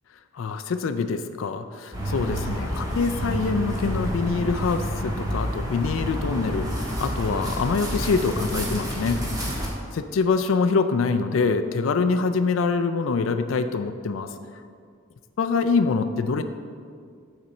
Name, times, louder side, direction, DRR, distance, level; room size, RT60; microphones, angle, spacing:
voice 1, 0.3-6.7 7.0-9.2 9.9-14.3 15.4-16.4, left 4 dB, 75° left, 9 dB, 0.4 m, -25 dB
sound 1, 1.9-9.7, equal, 20° right, 1.4 m, -29 dB
7.2 x 4.1 x 6.4 m, 2.1 s
head